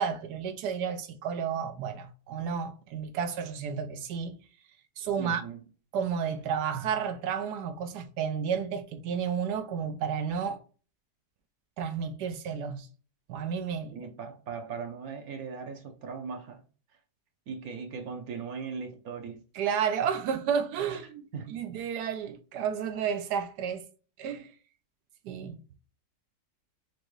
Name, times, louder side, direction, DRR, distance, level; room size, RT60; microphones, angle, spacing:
voice 1, 0.0-4.4 5.0-5.4 5.9-10.6 11.8-12.9 13.3-14.1 19.5-23.8 24.2-24.5 25.2-25.6, right 7 dB, 90° right, 1.2 m, -31 dB
voice 2, 5.2-5.6 13.9-16.6 17.5-19.4 20.9-21.0 21.3-21.6, right 5 dB, 70° right, 1.3 m, -39 dB
6.1 x 2.6 x 3.1 m
omnidirectional pair, 1.7 m